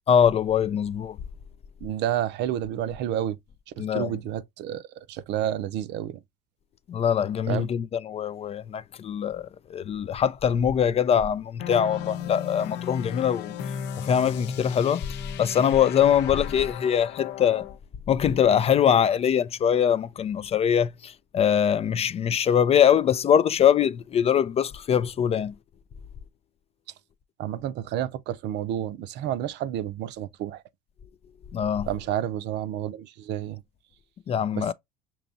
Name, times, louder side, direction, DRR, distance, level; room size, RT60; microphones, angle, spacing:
voice 1, 0.1-1.2 3.8-4.1 6.9-13.5 14.0-17.7 18.1-25.5 31.5-31.9 34.3-34.7, left 8 dB, 30° left, 0.4 m, -23 dB
voice 2, 1.8-3.4 3.8-6.2 7.5-7.7 27.4-30.6 31.9-33.6 34.6-34.7, right 11 dB, 55° right, 0.6 m, -30 dB
sound 1, 11.6-17.8, left 8 dB, 60° left, 0.7 m, -35 dB
5.5 x 2.9 x 2.5 m
supercardioid pair, 100°, 21 cm